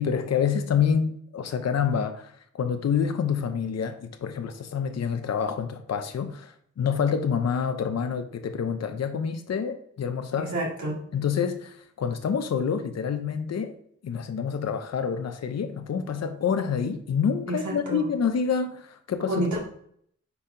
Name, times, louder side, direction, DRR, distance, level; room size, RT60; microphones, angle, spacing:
voice 1, 0.0-10.5 11.1-13.8 14.0-19.5, left 7 dB, 60° left, 7 dB, 0.7 m, -27 dB
voice 2, 10.4-11.0 17.5-18.1 19.3-19.6, right 1 dB, 75° right, -3 dB, 2.1 m, -29 dB
5.5 x 4.4 x 5.0 m, 0.65 s
wide cardioid pair, 85°, 29 cm